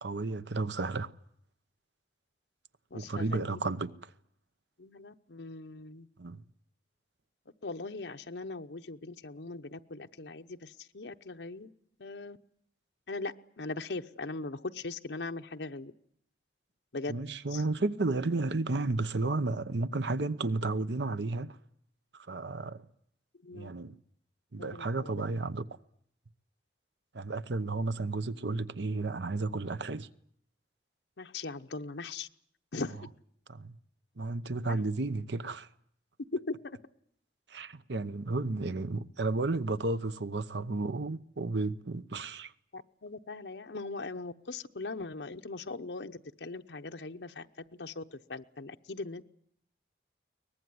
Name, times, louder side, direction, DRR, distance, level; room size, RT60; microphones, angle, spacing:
voice 1, 0.0-1.1 2.9-4.0 6.2-6.4 17.1-21.6 22.1-22.8 23.5-23.9 24.5-25.7 27.1-30.1 33.5-33.7 34.2-35.7 37.5-42.5, right 3 dB, 85° right, 0.9 m, -32 dB
voice 2, 2.9-3.7 4.8-6.1 7.6-11.7 12.0-12.4 13.1-15.9 16.9-17.2 17.5-17.6 23.4-23.7 24.6-25.1 31.2-32.3 32.7-33.0 34.7-34.8 36.3-36.8 42.7-47.5 47.8-49.2, left 3 dB, 90° left, 0.9 m, -40 dB
23.0 x 19.5 x 9.5 m
head